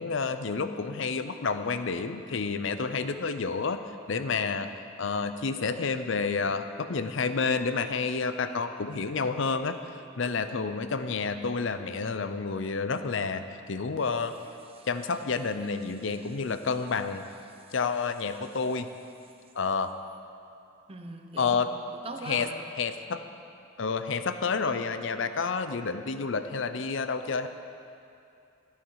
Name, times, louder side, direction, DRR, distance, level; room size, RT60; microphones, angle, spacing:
voice 1, 0.0-3.8 4.1-4.7 5.0-9.8 10.2-13.4 13.7-14.3 14.9-17.2 17.7-18.9 19.6-19.9 21.4-21.7 22.3-22.5 22.8-23.2 23.8-27.5, left 4 dB, 65° left, 10 dB, 0.6 m, -29 dB
voice 2, 20.9-22.6, right 2 dB, 30° right, 4 dB, 0.8 m, -42 dB
12.0 x 12.0 x 4.8 m, 2.6 s
head